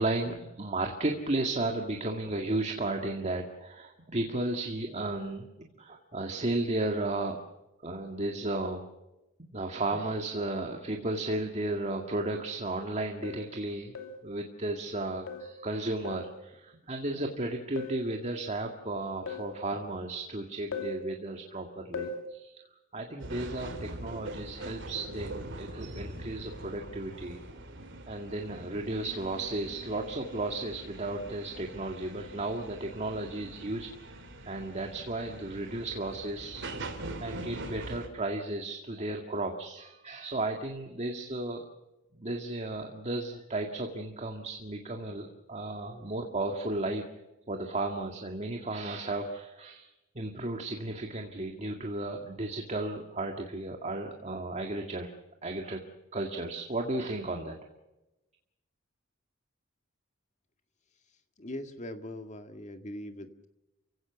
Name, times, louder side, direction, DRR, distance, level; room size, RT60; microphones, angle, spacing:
voice 1, 0.0-5.5 5.8-7.4 7.8-8.8 9.5-14.0 14.2-22.6 22.9-27.4 28.1-34.2 34.4-36.9 37.2-41.7 42.2-47.1 47.5-49.9 50.2-55.1 55.4-55.9 56.1-57.6, right 2 dB, 35° right, 3 dB, 2.0 m, -34 dB
sound 1, 13.2-13.5 14.0-14.3 15.3-15.6 16.1-16.4 17.8-18.1 19.3-19.6 20.7-21.0 21.9-22.3, left 3 dB, 80° left, 2.8 m, -38 dB
sound 2, 23.2-38.1, right 1 dB, 65° right, 3.5 m, -43 dB
voice 2, 61.4-63.5, left 1 dB, 35° left, 7 dB, 2.0 m, -41 dB
29.5 x 17.0 x 7.0 m, 1.0 s
head